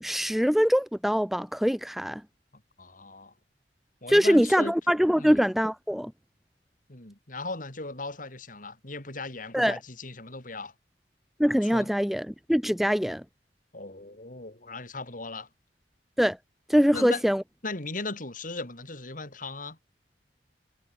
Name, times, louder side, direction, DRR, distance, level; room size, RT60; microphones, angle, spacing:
voice 1, 0.0-2.2 4.1-6.1 9.5-9.8 11.4-13.2 16.2-16.4 16.7-17.4, equal, ahead, 0.8 m, -23 dB
voice 2, 2.8-3.3 4.0-4.7 5.1-5.4 6.9-10.7 11.6-11.9 13.7-15.5 16.9-17.2 17.6-19.8, left 3 dB, 50° left, 4.0 m, -37 dB
head